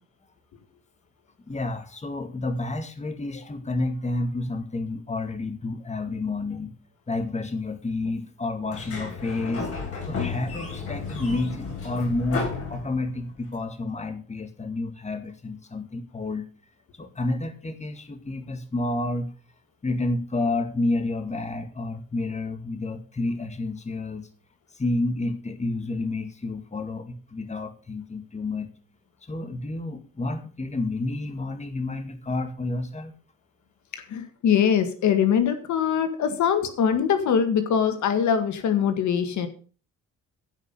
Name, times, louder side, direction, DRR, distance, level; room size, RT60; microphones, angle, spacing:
voice 1, 1.5-6.7 7.1-9.7 10.1-16.5 16.9-19.3 19.8-24.3 24.7-28.7 29.2-33.1, left 2 dB, 25° left, 7 dB, 2.1 m, -30 dB
Sliding door, 8.6-13.4, left 4 dB, 50° left, 7.4 m, -33 dB
voice 2, 33.9-39.5, left 8 dB, 70° left, 8 dB, 1.9 m, -23 dB
15.5 x 5.7 x 6.9 m, 0.39 s
cardioid pair, 90°, 30 cm